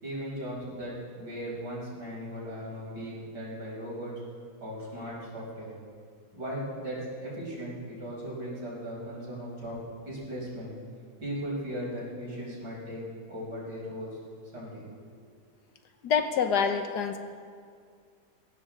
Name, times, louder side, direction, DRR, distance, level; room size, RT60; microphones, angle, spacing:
voice 1, 0.0-4.1 4.6-5.7 6.3-9.8 10.0-10.7 11.2-13.0 13.3-14.2 14.5-14.8, equal, 70° right, -6 dB, 6.2 m, -37 dB
voice 2, 16.0-17.2, left 6 dB, 70° left, 7 dB, 1.5 m, -26 dB
21.0 x 16.5 x 3.8 m, 2.1 s
omnidirectional pair, 1.8 m